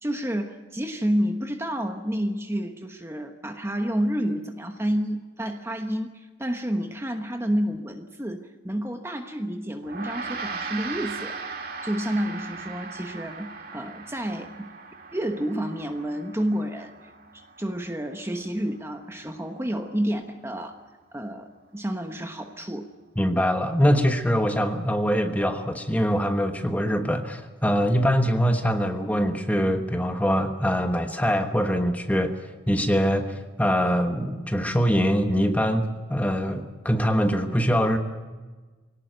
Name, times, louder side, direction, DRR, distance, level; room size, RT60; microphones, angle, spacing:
voice 1, 0.0-11.4 11.8-14.7 15.1-16.9 17.3-20.8 21.1-22.9, equal, 15° right, 5 dB, 1.1 m, -29 dB
Gong, 9.8-19.4, right 4 dB, 50° right, 2.1 m, -39 dB
voice 2, 23.2-32.4 32.7-38.0, equal, 10° left, 6 dB, 1.3 m, -23 dB
23.5 x 18.0 x 9.3 m, 1.3 s
head